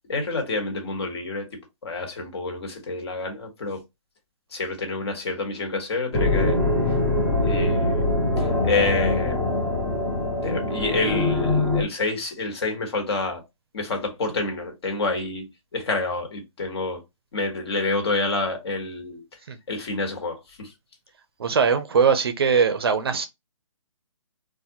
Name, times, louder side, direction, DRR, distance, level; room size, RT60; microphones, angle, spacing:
voice 1, 0.1-3.8 4.5-6.6 7.4-8.1 8.4-9.5 10.4-13.4 13.7-17.0 17.3-19.2 19.7-20.7, left 3 dB, 50° left, 1.5 m, -28 dB
sound 1, 6.1-11.8, left 2 dB, 5° left, 0.5 m, -23 dB
voice 2, 21.4-23.3, right 6 dB, 45° right, 0.6 m, -21 dB
4.0 x 2.5 x 2.9 m
hypercardioid pair, 165°, 18 cm